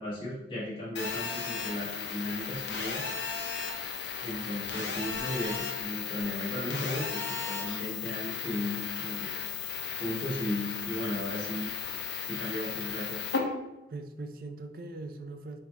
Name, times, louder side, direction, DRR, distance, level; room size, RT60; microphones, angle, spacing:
voice 1, 0.0-3.0 4.2-9.3 10.0-11.7 12.2-13.2, left 1 dB, 25° left, -9 dB, 1.2 m, -35 dB
Telephone, 0.9-13.4, left 6 dB, 80° left, 0.6 m, -35 dB
voice 2, 9.0-9.3 13.9-15.6, right 2 dB, 50° right, 7 dB, 0.3 m, -41 dB
4.9 x 2.4 x 2.8 m, 0.98 s
head